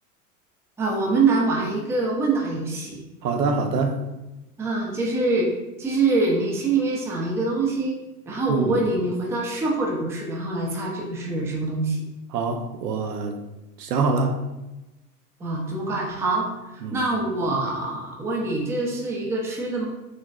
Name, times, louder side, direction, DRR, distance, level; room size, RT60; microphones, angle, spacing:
voice 1, 0.8-3.0 4.6-5.5 5.8-8.0 8.3-12.0 15.4-19.8, right 3 dB, 5° right, -1 dB, 0.4 m, -24 dB
voice 2, 3.2-4.0 8.5-8.8 12.3-13.4 13.8-14.4 16.8-17.0, right 4 dB, 90° right, 5 dB, 0.6 m, -24 dB
4.2 x 3.1 x 2.4 m, 1.0 s
hypercardioid pair, 95°, 48 cm